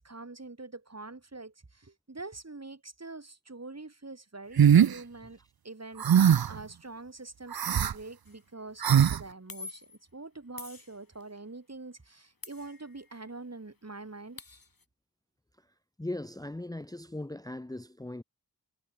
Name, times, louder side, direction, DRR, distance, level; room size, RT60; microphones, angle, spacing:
voice 1, 0.0-5.4 5.6-14.4, right 3 dB, 45° right, 2.8 m, -45 dB
sound 1, 4.6-4.9 6.0-6.6 7.5-7.9 8.8-9.2, right 8 dB, 75° right, 0.6 m, -20 dB
sound 2, 8.3-8.5 9.5-10.0 10.6-11.4 12.4-13.3 13.6-13.7 14.0-14.8, left 4 dB, 70° left, 3.8 m, -47 dB
voice 2, 16.0-18.2, left 1 dB, 10° left, 0.7 m, -38 dB
wide cardioid pair, 55°, 37 cm